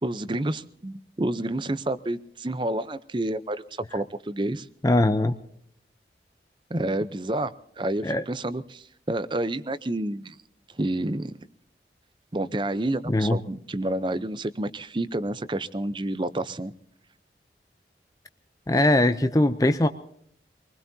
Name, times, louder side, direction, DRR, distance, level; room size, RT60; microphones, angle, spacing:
voice 1, 0.0-4.7 6.7-10.4 10.8-11.3 12.3-16.7, right 1 dB, 25° right, 14 dB, 0.6 m, -29 dB
voice 2, 4.8-5.3 8.0-8.2 13.1-13.4 18.7-19.9, left 1 dB, 20° left, 9 dB, 0.6 m, -21 dB
25.5 x 20.5 x 2.7 m, 0.69 s
head